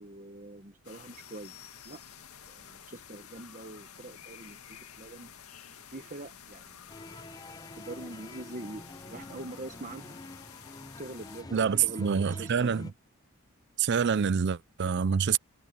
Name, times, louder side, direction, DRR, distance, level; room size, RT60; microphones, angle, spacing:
voice 1, 0.0-2.0 2.5-5.3 5.9-6.9 7.7-10.1 11.0-12.7, right 2 dB, 35° right, 1.2 m, -44 dB
sound 1, 0.8-11.4, left 8 dB, 80° left, 2.0 m, -51 dB
sound 2, 6.9-12.9, left 2 dB, 15° left, 0.8 m, -47 dB
voice 2, 11.5-12.9 13.8-15.4, right 7 dB, 50° right, 0.4 m, -26 dB
head